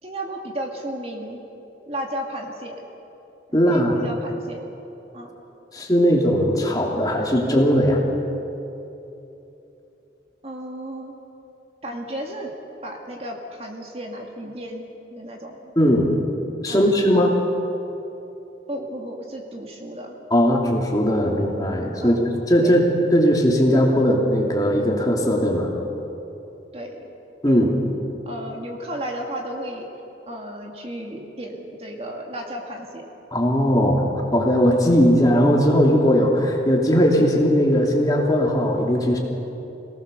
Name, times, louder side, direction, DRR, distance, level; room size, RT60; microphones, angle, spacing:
voice 1, 0.0-1.4 1.9-2.8 3.5-4.6 5.1-5.3 10.4-11.2 11.8-12.5 12.8-14.8 15.1-15.7 16.7-17.3 18.7-20.2 22.0-22.2 22.6-22.8 26.7-27.1 27.5-27.7 28.3-29.9 30.3-33.1, right 1 dB, 35° right, 1 dB, 2.2 m, -33 dB
voice 2, 3.5-3.9 5.7-8.0 15.8-16.1 16.6-17.3 20.3-22.2 22.5-22.9 23.1-25.7 27.4-27.7 33.3-34.0 34.3-39.2, equal, 20° left, -1 dB, 2.8 m, -18 dB
26.5 x 18.5 x 6.9 m, 3.0 s
head